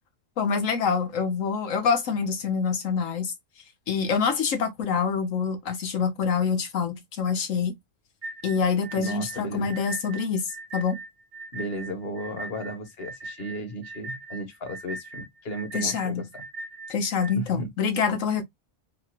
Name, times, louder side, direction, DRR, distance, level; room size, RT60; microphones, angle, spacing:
voice 1, 0.4-3.3 3.9-7.8 8.4-11.0 15.7-16.3 16.9-18.4, left 6 dB, 65° left, 1.3 m, -26 dB
sound 1, 8.2-17.4, right 2 dB, 40° right, 0.8 m, -40 dB
voice 2, 9.0-9.8 11.5-16.4 17.3-17.7, equal, 45° left, 1.3 m, -35 dB
4.0 x 2.4 x 2.9 m
omnidirectional pair, 1.5 m